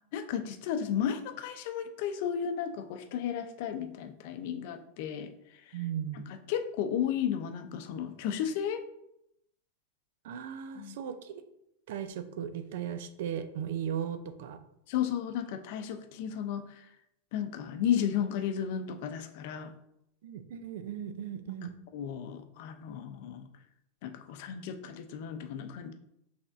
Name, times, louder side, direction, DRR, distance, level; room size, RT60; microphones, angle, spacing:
voice 1, 0.1-5.8 6.1-8.8 10.7-11.0 14.9-16.9 17.3-19.7 21.9-23.5 24.0-25.9, left 9 dB, 60° left, 8 dB, 0.5 m, -34 dB
voice 2, 5.7-6.3 10.2-11.4 11.9-14.6 20.2-21.8, right 9 dB, 70° right, 10 dB, 0.4 m, -37 dB
5.9 x 3.4 x 2.6 m, 0.80 s
supercardioid pair, 125°, 0 cm